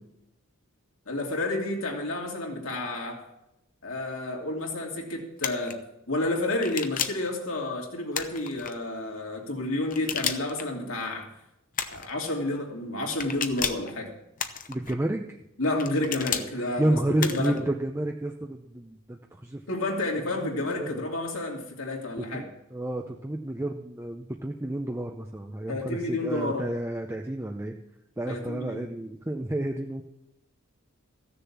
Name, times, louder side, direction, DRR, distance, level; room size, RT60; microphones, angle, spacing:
voice 1, 1.1-3.2 3.8-5.8 6.1-11.3 11.9-14.1 15.6-17.6 19.7-22.4 25.7-26.7 28.3-28.8, left 2 dB, 70° left, 0 dB, 2.8 m, -30 dB
sound 1, 5.4-5.7 6.6-7.3 8.1-8.7 9.9-10.6 11.7-12.1 13.2-13.9 14.4-14.9 15.8-16.5 17.2-17.6, left 7 dB, 40° left, 0.9 m, -32 dB
voice 2, 14.7-15.4 16.5-19.6 20.7-20.9 22.2-27.8 28.2-30.0, right 1 dB, 10° right, 2 dB, 0.6 m, -30 dB
15.0 x 6.9 x 7.3 m, 0.86 s
head